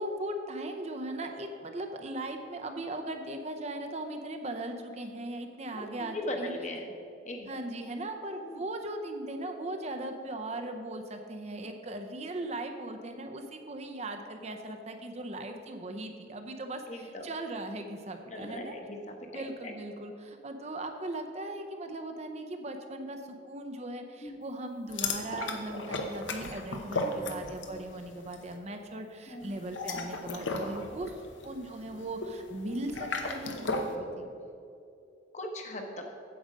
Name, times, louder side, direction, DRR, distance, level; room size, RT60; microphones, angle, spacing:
voice 1, 0.0-6.5 7.5-18.8 19.3-34.3, right 1 dB, 35° right, 5 dB, 0.6 m, -38 dB
voice 2, 5.7-6.9 7.2-7.6 8.4-8.6 12.4-12.6 12.9-13.0 16.9-17.3 18.3-19.7 24.2-24.4 27.0-27.5 29.3-29.6 35.3-36.0, left 1 dB, 40° left, 2 dB, 1.0 m, -39 dB
sound 1, 24.9-27.8 28.1-28.4 29.6-34.0, left 2 dB, 80° left, 0.9 m, -35 dB
8.8 x 7.8 x 5.1 m, 2.6 s
head